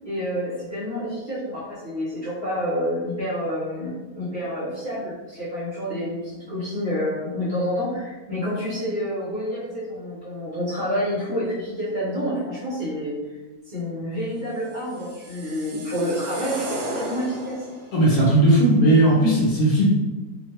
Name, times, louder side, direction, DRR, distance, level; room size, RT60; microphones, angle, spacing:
voice 1, 0.0-13.2 13.6-17.6, equal, 45° right, -10 dB, 0.9 m, -28 dB
sound 1, 14.7-17.9, right 2 dB, 75° right, 0.7 m, -34 dB
voice 2, 17.9-19.9, right 1 dB, 65° left, -5 dB, 1.0 m, -17 dB
2.9 x 2.3 x 2.8 m, 1.2 s
omnidirectional pair, 1.9 m